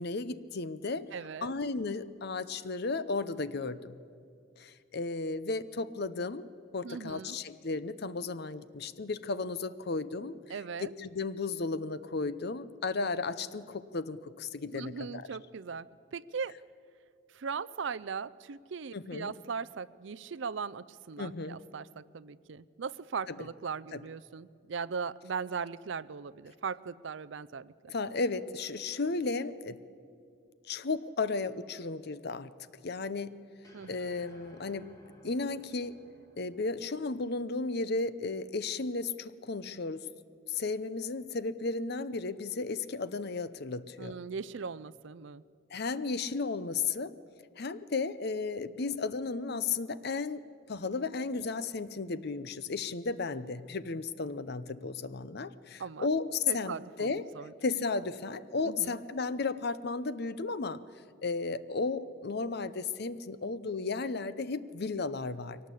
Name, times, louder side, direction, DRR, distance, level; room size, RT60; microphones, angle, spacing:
voice 1, 0.0-1.0 1.4-4.0 4.6-6.5 6.7-10.4 10.8-15.3 18.9-19.3 21.2-21.6 23.3-23.4 23.9-24.0 27.9-29.8 30.7-32.5 32.8-33.3 33.9-34.8 35.2-36.0 36.4-40.1 40.5-44.2 45.7-47.1 47.6-57.2 57.6-60.8 61.2-65.6, left 4 dB, 50° left, 15 dB, 0.7 m, -34 dB
voice 2, 1.1-1.5 6.8-7.4 10.5-10.9 14.6-16.6 17.3-27.9 33.7-33.9 44.0-45.4 55.8-56.1 56.5-57.5 58.6-59.0, right 5 dB, 60° right, 19 dB, 0.5 m, -39 dB
sound 1, 33.6-38.0, equal, 15° left, 3.5 m, -59 dB
22.5 x 18.5 x 8.4 m, 2.3 s
head